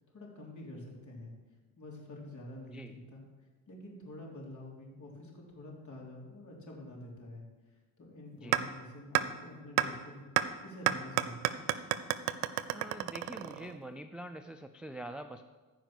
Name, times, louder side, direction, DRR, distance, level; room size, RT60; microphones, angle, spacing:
voice 1, 0.1-1.3 1.8-3.2 3.7-10.2 10.6-11.6, left 1 dB, 40° left, -2 dB, 3.7 m, -48 dB
sound 1, 8.5-8.6 9.1-9.2 9.8-9.9 10.4-10.5 10.9-13.8, right 15 dB, 85° right, 0.7 m, -29 dB
voice 2, 12.7-15.4, right 1 dB, ahead, 7 dB, 0.4 m, -45 dB
14.5 x 5.1 x 6.1 m, 1.3 s
supercardioid pair, 80°, 44 cm